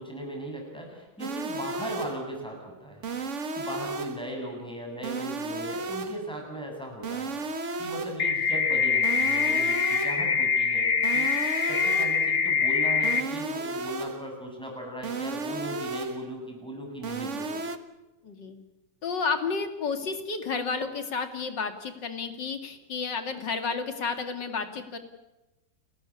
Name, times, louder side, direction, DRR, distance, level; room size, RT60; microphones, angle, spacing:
voice 1, 0.0-3.1 3.5-17.6, equal, 5° left, 0 dB, 7.4 m, -38 dB
sound 1, 1.2-2.3 3.0-4.3 5.0-6.3 7.0-8.3 9.0-10.3 11.0-12.3 13.0-14.3 15.0-16.3 17.0-17.8, right 3 dB, 45° right, 1.6 m, -34 dB
sound 2, 8.2-13.2, left 6 dB, 45° left, 1.7 m, -24 dB
voice 2, 18.2-18.6 19.0-25.0, left 4 dB, 90° left, 8 dB, 3.0 m, -31 dB
30.0 x 14.0 x 9.9 m, 1.0 s
omnidirectional pair, 1.9 m